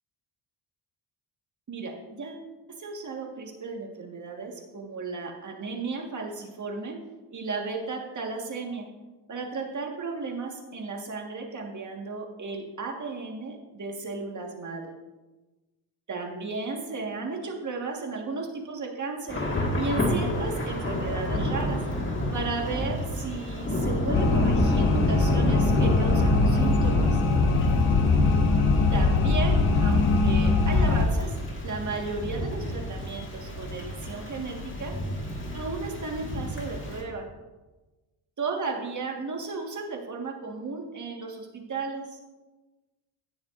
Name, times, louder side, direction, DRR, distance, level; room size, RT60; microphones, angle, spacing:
voice 1, 1.7-7.0 7.3-8.9 9.3-15.0 16.1-19.4 19.7-21.8 22.3-27.2 28.9-31.3 31.6-35.0 35.5-37.3 38.4-42.2, right 4 dB, 35° right, 2 dB, 1.6 m, -34 dB
Thunder / Rain, 19.3-37.0, equal, 25° left, 1.8 m, -29 dB
sound 1, 24.1-31.0, left 4 dB, 75° left, 1.2 m, -22 dB
17.0 x 7.1 x 2.5 m, 1.2 s
cardioid pair, 120°, 50 cm